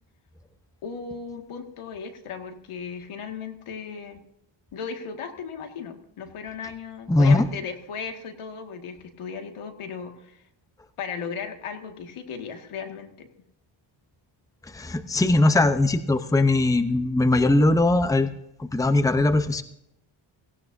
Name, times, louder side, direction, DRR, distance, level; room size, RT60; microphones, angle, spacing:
voice 1, 0.8-4.2 4.7-10.5 11.0-13.3, left 6 dB, 80° left, 5 dB, 2.1 m, -36 dB
voice 2, 7.1-7.5 14.7-18.3 18.6-19.6, left 2 dB, 5° left, 10 dB, 0.8 m, -20 dB
17.5 x 17.5 x 2.7 m, 0.78 s
cardioid pair, 110°, 49 cm